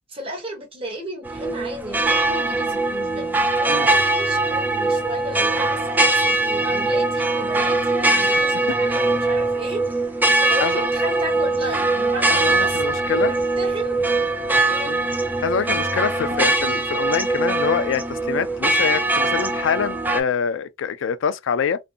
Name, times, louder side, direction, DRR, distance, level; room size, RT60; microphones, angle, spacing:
voice 1, 0.1-10.1 10.4-13.0 13.2-14.0 14.7-14.9, equal, 30° right, 1.1 m, -33 dB
sound 1, 1.2-20.2, right 2 dB, 10° right, 0.3 m, -21 dB
voice 2, 12.3-13.3 14.8-15.0 15.4-21.8, left 7 dB, 85° left, 0.3 m, -25 dB
2.6 x 2.1 x 2.4 m
head